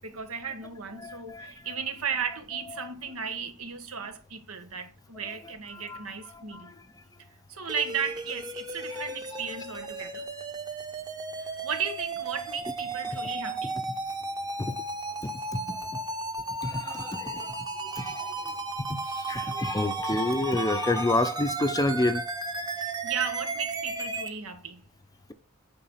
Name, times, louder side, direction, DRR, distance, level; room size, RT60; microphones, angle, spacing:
voice 1, 0.0-6.7 7.5-10.3 11.4-13.8 22.8-24.8, right 6 dB, 80° right, 1.7 m, -35 dB
voice 2, 1.0-1.5 2.8-2.9 5.7-6.1 6.5-6.9 8.9-9.1 14.6-14.7 15.2-16.0 16.6-18.5 18.9-22.2, left 2 dB, 15° left, 0.6 m, -30 dB
sound 1, 7.7-24.3, right 3 dB, 20° right, 1.0 m, -34 dB
8.7 x 5.1 x 5.6 m
head